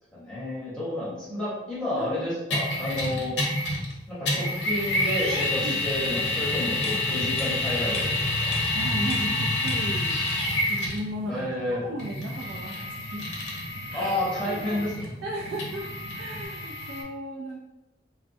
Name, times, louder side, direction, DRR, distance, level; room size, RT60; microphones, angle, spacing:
voice 1, 0.1-3.4 4.1-8.5 11.3-11.8 13.9-14.9, left 1 dB, 5° left, -9 dB, 0.7 m, -30 dB
voice 2, 2.0-2.3 5.6-5.8 8.7-10.2 10.6-13.3 13.9-14.1 14.4-14.8 15.2-17.6, right 1 dB, 75° right, -2 dB, 0.3 m, -36 dB
sound 1, 2.5-3.9 4.2-11.1 12.0-17.0, left 2 dB, 90° left, 0.7 m, -28 dB
sound 2, 4.6-16.5, equal, 55° right, 0.8 m, -45 dB
sound 3, 6.8-9.4 9.7-10.6 11.0-11.1, left 4 dB, 35° left, 0.3 m, -41 dB
3.3 x 2.1 x 2.6 m, 0.97 s
head